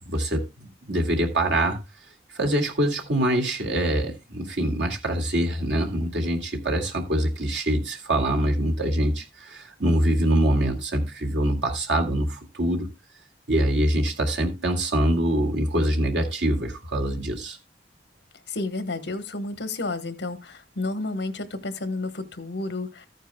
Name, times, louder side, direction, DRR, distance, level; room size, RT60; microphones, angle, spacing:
voice 1, 0.0-1.8 2.3-12.9 13.5-17.6, right 1 dB, 85° right, 2.1 m, -24 dB
voice 2, 18.5-23.1, left 2 dB, 75° left, 1.2 m, -31 dB
14.0 x 9.2 x 2.2 m
head